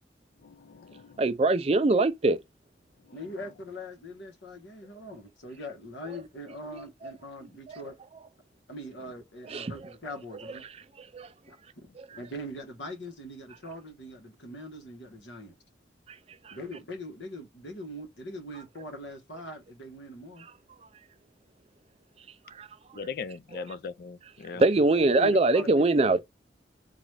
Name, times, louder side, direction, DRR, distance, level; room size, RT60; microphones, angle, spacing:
voice 1, 0.4-1.2 22.9-24.6, left 5 dB, 50° left, 0.3 m, -39 dB
voice 2, 1.2-2.4 6.1-6.2 6.7-7.1 7.7-7.8 9.4-9.9 10.3-11.3 12.0-12.2 16.1-16.2 16.4-16.6 20.4-20.5 22.5-23.1 23.5-23.6 24.6-26.2, right 2 dB, 30° right, 0.4 m, -25 dB
voice 3, 3.1-7.9 8.7-10.6 11.5-11.6 12.2-15.5 16.5-20.5 24.5-24.6 25.0-26.2, left 1 dB, 75° left, 1.2 m, -41 dB
3.9 x 2.3 x 3.2 m
head